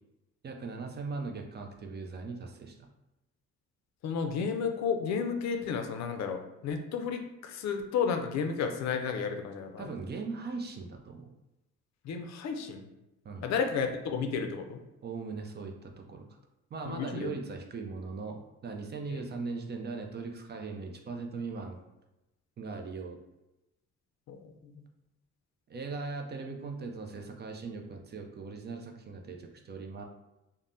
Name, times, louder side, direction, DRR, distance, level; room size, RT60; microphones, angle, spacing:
voice 1, 0.4-2.9 9.8-11.3 13.2-13.5 15.0-16.3 16.7-21.8 22.6-23.2 25.7-30.0, right 4 dB, 35° right, 3 dB, 0.4 m, -39 dB
voice 2, 4.0-9.9 12.0-12.8 13.4-14.8 16.9-17.3 19.1-19.2 24.3-24.8, left 6 dB, 65° left, 5 dB, 0.4 m, -32 dB
3.2 x 2.1 x 2.6 m, 0.95 s
cardioid pair, 90°, 30 cm